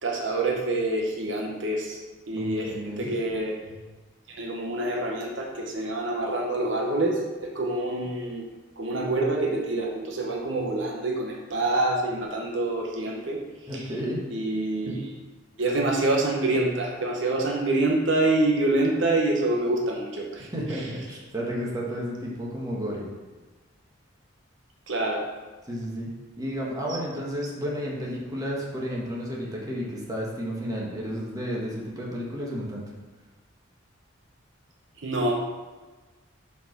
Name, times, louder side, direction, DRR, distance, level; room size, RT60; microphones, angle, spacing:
voice 1, 0.0-2.0 2.3-3.5 4.3-8.4 8.8-13.4 13.7-13.8 14.3-15.1 15.6-20.5 24.9-25.2 35.0-35.3, right 2 dB, 70° right, 0 dB, 1.0 m, -26 dB
voice 2, 2.4-3.1 13.7-14.3 20.5-23.1 25.7-26.1 26.4-32.8, equal, 20° right, -4 dB, 1.4 m, -32 dB
5.7 x 4.7 x 6.0 m, 1.3 s
head